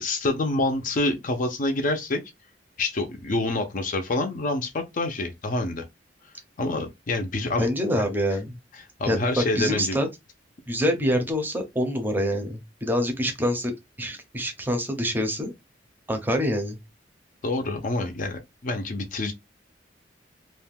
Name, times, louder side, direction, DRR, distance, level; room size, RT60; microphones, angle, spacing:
voice 1, 0.0-2.2 2.8-5.9 6.6-7.7 7.9-8.1 9.0-10.0 17.4-19.3, left 2 dB, 45° left, 0.5 m, -27 dB
voice 2, 7.6-8.6 9.1-10.1 10.7-13.7 14.0-15.5 16.1-16.8, equal, 10° right, 0.6 m, -26 dB
2.5 x 2.2 x 3.3 m
head